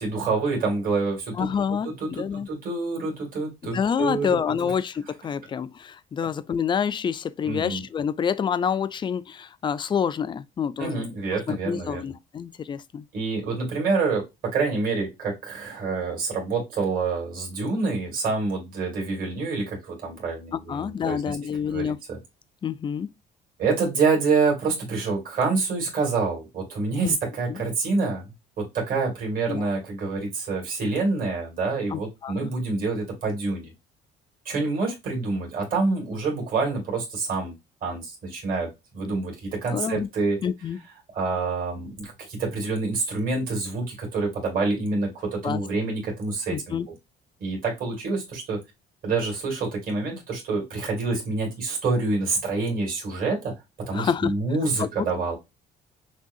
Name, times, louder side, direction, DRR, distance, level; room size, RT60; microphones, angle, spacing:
voice 1, 0.0-1.5 1.8-4.4 4.6-4.7 7.4-7.8 10.8-12.1 13.1-21.4 21.7-22.2 23.6-28.3 28.6-33.7 34.5-37.5 37.8-40.4 41.1-46.8 47.4-48.6 49.0-53.5 53.9-55.3, right 3 dB, 55° right, 2.3 m, -27 dB
voice 2, 1.4-2.5 3.6-11.1 11.5-13.0 20.7-22.0 22.6-23.1 27.0-27.2 27.5-27.6 29.5-29.7 31.9-32.3 39.7-40.1 40.4-40.8 45.4-45.6 46.5-46.9 53.9-54.3 54.8-54.9, left 7 dB, 30° left, 0.4 m, -27 dB
6.1 x 2.3 x 2.7 m
cardioid pair, 110°, 17 cm